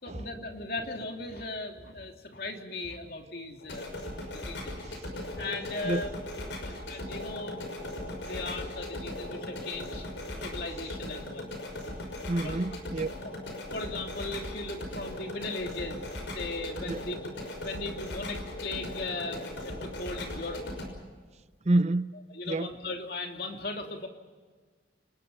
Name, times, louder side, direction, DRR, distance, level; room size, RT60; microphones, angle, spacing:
voice 1, 0.0-3.9 4.3-5.0 5.4-6.2 6.6-10.1 10.4-11.5 12.4-12.6 13.7-16.1 16.3-20.6 22.3-24.1, left 2 dB, 55° left, 2.9 m, -38 dB
sound 1, 3.6-20.9, left 1 dB, 90° left, 5.8 m, -38 dB
voice 2, 12.3-13.1 16.9-17.0 21.7-22.2 22.5-22.7, right 2 dB, 35° right, 0.6 m, -28 dB
29.5 x 20.0 x 5.5 m
head